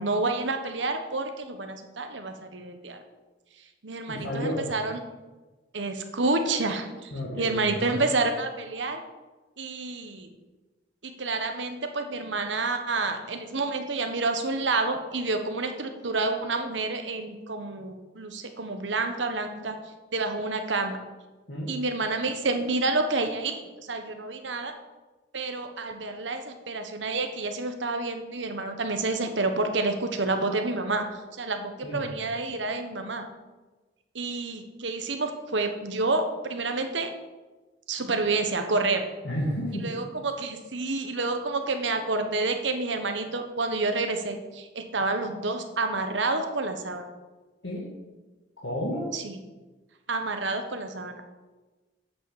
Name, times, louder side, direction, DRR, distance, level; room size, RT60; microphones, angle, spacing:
voice 1, 0.0-3.0 3.8-5.0 5.7-9.0 9.6-10.3 11.0-19.8 20.1-21.0 21.7-24.7 25.3-33.3 34.1-37.1 37.9-39.0 39.7-47.0 49.1-49.4 50.1-51.2, right 3 dB, 75° right, 6 dB, 1.2 m, -29 dB
voice 2, 4.1-4.6 7.1-8.0 21.5-21.7 31.8-32.0 39.2-40.0 47.6-47.9 48.6-49.1, equal, 90° left, -6 dB, 2.4 m, -31 dB
8.6 x 6.7 x 7.1 m, 1.2 s
head